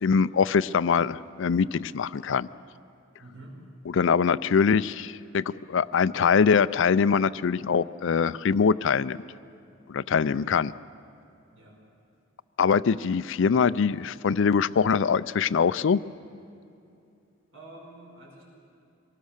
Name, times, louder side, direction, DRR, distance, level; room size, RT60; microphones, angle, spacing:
voice 1, 0.0-2.5 3.9-9.2 9.9-10.7 12.6-16.0, left 6 dB, 65° left, 17 dB, 0.4 m, -23 dB
voice 2, 3.2-3.6 11.5-11.8 12.8-13.0 17.5-18.4, right 1 dB, 85° right, -1 dB, 5.3 m, -47 dB
24.5 x 18.5 x 6.6 m, 2.6 s
head